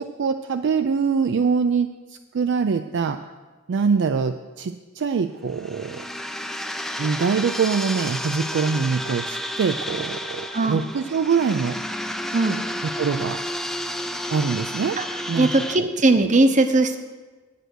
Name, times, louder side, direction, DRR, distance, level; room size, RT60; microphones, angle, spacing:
voice 1, 0.0-1.9 2.3-3.2 3.7-6.0 7.0-11.8 13.0-13.4 14.3-15.0 15.3-15.5 15.8-15.9, right 5 dB, 55° right, 8 dB, 0.4 m, -23 dB
sound 1, 5.5-15.8, equal, ahead, 0.4 m, -31 dB
voice 2, 15.4-17.0, right 2 dB, 35° right, 8 dB, 0.8 m, -19 dB
10.0 x 8.0 x 6.2 m, 1.3 s
head